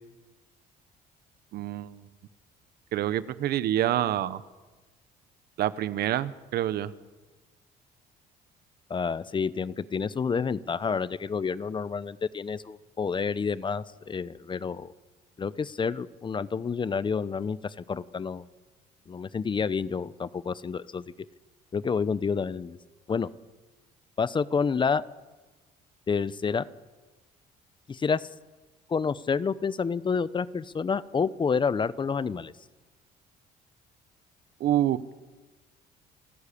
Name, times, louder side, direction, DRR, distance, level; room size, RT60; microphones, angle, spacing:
voice 1, 1.5-2.0 2.9-4.4 5.6-6.9 34.6-35.1, right 12 dB, 70° right, 15 dB, 1.1 m, -27 dB
voice 2, 8.9-14.9 15.4-18.4 19.1-21.0 21.7-22.8 23.1-23.3 24.2-25.0 26.1-26.7 27.9-28.3 28.9-32.5, left 5 dB, 30° left, 17 dB, 0.8 m, -29 dB
28.0 x 13.5 x 8.6 m, 1.2 s
cardioid pair, 110°, 17 cm